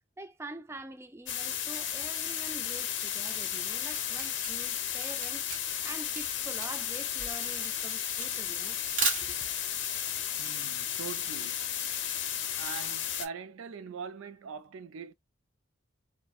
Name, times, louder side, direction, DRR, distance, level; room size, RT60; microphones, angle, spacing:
voice 1, 0.2-8.8 9.2-9.5, right 1 dB, 10° right, 0.3 m, -46 dB
sound 1, 1.3-13.3, left 9 dB, 60° left, 0.6 m, -34 dB
Camera, 3.5-9.7, right 4 dB, 40° right, 1.3 m, -36 dB
voice 2, 10.4-11.7 12.6-15.1, right 6 dB, 80° right, 0.4 m, -42 dB
4.3 x 2.1 x 2.3 m
head